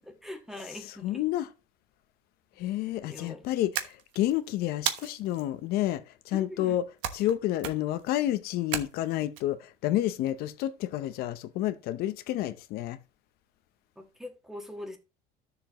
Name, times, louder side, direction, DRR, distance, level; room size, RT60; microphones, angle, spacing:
voice 1, 0.0-1.2 3.1-3.5 6.3-6.8 14.0-15.0, left 1 dB, ahead, 1.5 m, -42 dB
voice 2, 0.7-1.5 2.6-13.0, left 13 dB, 55° left, 0.7 m, -30 dB
sound 1, 3.7-4.3 4.9-5.4 7.0-7.3 7.6-8.0 8.7-9.4, right 10 dB, 75° right, 1.2 m, -33 dB
12.5 x 6.9 x 3.0 m
cardioid pair, 160°, 19 cm